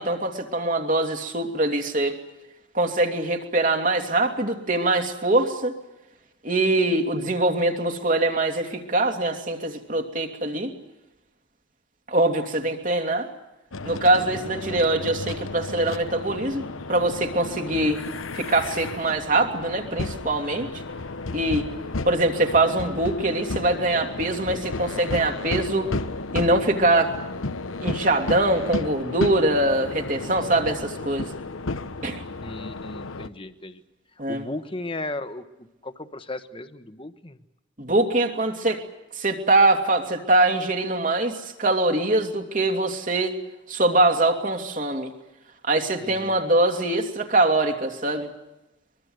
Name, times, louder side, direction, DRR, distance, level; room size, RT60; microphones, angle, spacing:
voice 1, 0.0-2.2 2.7-5.8 6.4-10.7 12.1-13.3 13.8-16.6 16.9-18.0 18.3-20.7 21.3-21.7 22.0-25.9 26.3-27.1 27.8-31.3 32.0-32.2 34.2-34.5 37.8-38.8 39.2-43.3 43.7-45.1 45.6-48.3, right 2 dB, 40° right, 4 dB, 2.9 m, -23 dB
sound 1, 13.7-33.3, left 3 dB, 85° left, 1.1 m, -33 dB
voice 2, 32.4-33.8 34.3-37.4 46.0-46.4 46.7-46.8, left 2 dB, 25° left, 10 dB, 1.3 m, -36 dB
23.5 x 23.0 x 8.1 m, 0.96 s
head